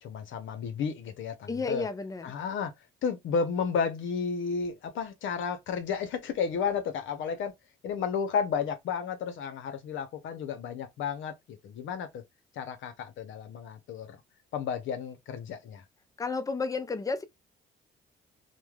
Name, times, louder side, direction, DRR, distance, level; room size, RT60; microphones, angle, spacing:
voice 1, 0.0-1.9 2.2-2.7 3.0-7.5 7.8-12.2 12.6-14.2 14.5-15.8, left 6 dB, 75° left, 0.7 m, -32 dB
voice 2, 1.5-2.3 16.2-17.3, left 4 dB, 15° left, 0.4 m, -31 dB
3.1 x 2.1 x 2.3 m
cardioid pair, 90°, 20 cm